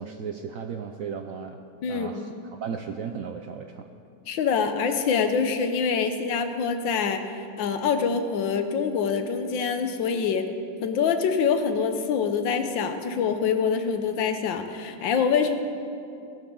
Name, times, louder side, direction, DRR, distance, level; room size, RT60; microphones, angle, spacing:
voice 1, 0.0-1.6 1.9-3.9, right 6 dB, 75° right, 6 dB, 0.7 m, -35 dB
voice 2, 1.8-2.2 4.3-7.3 7.6-10.5 10.8-15.6, left 6 dB, 80° left, 7 dB, 1.6 m, -25 dB
19.0 x 12.5 x 3.8 m, 2.6 s
omnidirectional pair, 2.0 m